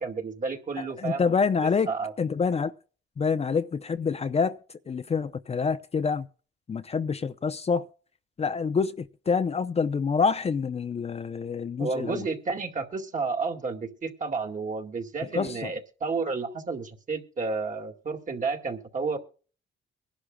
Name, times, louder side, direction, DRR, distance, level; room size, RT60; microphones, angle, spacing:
voice 1, 0.0-1.3 1.6-2.1 11.8-19.2, right 4 dB, 40° right, 2.1 m, -31 dB
voice 2, 0.8-1.9 2.2-2.7 3.2-4.6 4.9-6.3 6.7-7.9 8.4-12.3 15.3-15.7, left 5 dB, 30° left, 0.6 m, -27 dB
23.5 x 11.5 x 2.3 m
cardioid pair, 90°, 20 cm